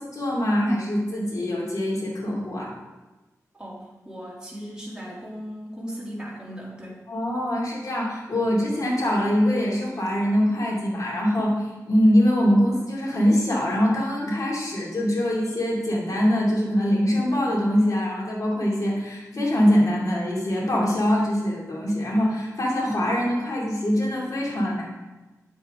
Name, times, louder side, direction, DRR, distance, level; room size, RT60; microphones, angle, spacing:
voice 1, 0.0-2.7 7.1-24.8, equal, 70° left, -4 dB, 2.7 m, -23 dB
voice 2, 3.5-7.0, equal, 15° right, -5 dB, 2.8 m, -37 dB
8.8 x 7.2 x 3.7 m, 1.1 s
wide cardioid pair, 65°, 6 cm